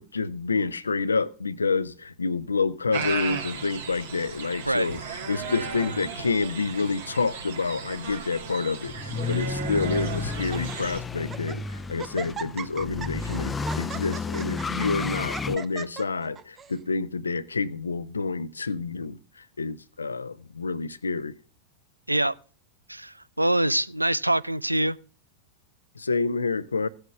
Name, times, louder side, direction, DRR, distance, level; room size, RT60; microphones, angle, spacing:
voice 1, 0.0-5.0 5.3-19.2 19.6-21.3 26.0-26.9, left 4 dB, 75° left, 0.6 m, -28 dB
sound 1, 2.9-11.0, right 5 dB, 65° right, 2.5 m, -35 dB
Laughter, 5.7-6.6 7.3-7.6 7.9-8.0 8.8-9.4 9.9-10.0 10.4-10.8 11.2-11.6 12.0-16.8, right 6 dB, 25° right, 0.7 m, -40 dB
sound 2, 8.9-15.6, left 4 dB, 15° left, 0.6 m, -32 dB
voice 2, 22.9-25.0, right 1 dB, 85° right, 0.4 m, -24 dB
16.5 x 8.0 x 3.5 m
figure-of-eight pair, 90°, 0 cm